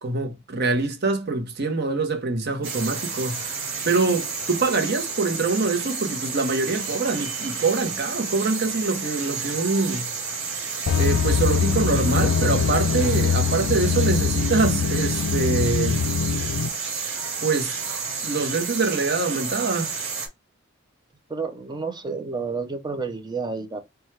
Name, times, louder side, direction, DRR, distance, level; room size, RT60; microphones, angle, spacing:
voice 1, 0.0-3.6 3.8-10.1 10.9-16.0 17.4-17.7 18.2-19.9, right 3 dB, 50° right, 0.9 m, -24 dB
sound 1, 2.6-20.3, right 5 dB, 65° right, 1.4 m, -31 dB
sound 2, 10.9-16.7, left 6 dB, 60° left, 0.3 m, -23 dB
voice 2, 21.3-23.8, right 4 dB, 20° right, 0.5 m, -30 dB
4.4 x 2.3 x 3.2 m
head